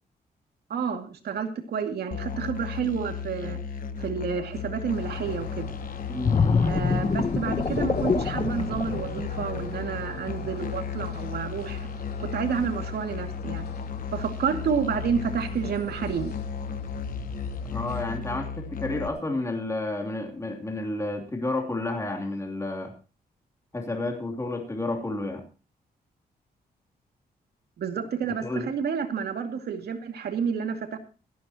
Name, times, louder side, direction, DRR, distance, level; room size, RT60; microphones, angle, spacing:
voice 1, 0.7-3.6 4.0-5.7 6.6-11.9 12.2-13.7 14.1-16.3 27.8-31.0, right 6 dB, 75° right, 5 dB, 2.4 m, -30 dB
Musical instrument, 2.1-19.1, left 6 dB, 55° left, 1.1 m, -35 dB
sound 1, 4.9-18.0, left 4 dB, 70° left, 3.6 m, -42 dB
voice 2, 6.1-6.4 17.7-22.9 23.7-25.4 28.4-28.7, left 2 dB, 20° left, 2 dB, 2.9 m, -31 dB
sound 2, 6.2-9.8 10.3-10.5, left 5 dB, 35° left, 1.0 m, -25 dB
16.5 x 14.5 x 2.9 m, 0.35 s
cardioid pair, 105°, 17 cm